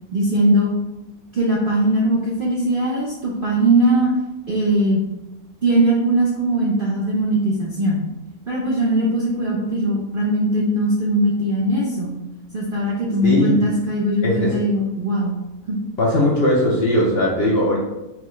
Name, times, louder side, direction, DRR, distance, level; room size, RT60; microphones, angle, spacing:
voice 1, 0.1-0.7 1.3-4.1 4.5-5.0 5.6-8.0 8.5-12.2 12.5-15.3 15.7-15.8, right 1 dB, 55° right, -4 dB, 0.6 m, -20 dB
voice 2, 13.2-13.6 14.2-14.5 16.0-17.8, left 1 dB, 50° left, -4 dB, 0.8 m, -19 dB
4.7 x 2.3 x 3.1 m, 0.98 s
omnidirectional pair, 1.6 m